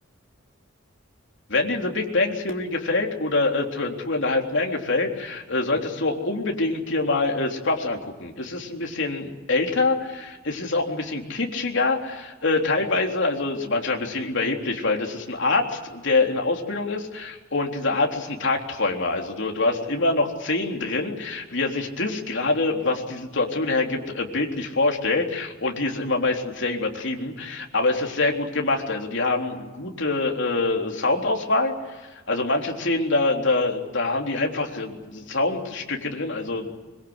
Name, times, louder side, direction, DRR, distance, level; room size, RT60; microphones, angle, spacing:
voice 1, 1.5-36.7, left 3 dB, 65° left, 1 dB, 3.6 m, -25 dB
25.0 x 23.0 x 8.1 m, 1.2 s
head